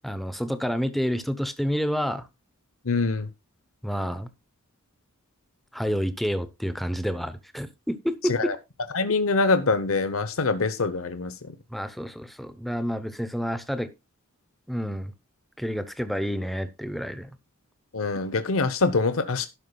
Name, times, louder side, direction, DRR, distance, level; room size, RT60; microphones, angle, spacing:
voice 1, 0.0-2.3 3.8-4.3 5.7-8.5 11.7-13.9 14.7-15.1 15.6-17.3, equal, ahead, 0.8 m, -29 dB
voice 2, 2.9-3.3 8.3-8.5 8.9-11.5 17.9-19.5, left 3 dB, 75° left, 0.9 m, -24 dB
11.5 x 11.0 x 2.3 m
head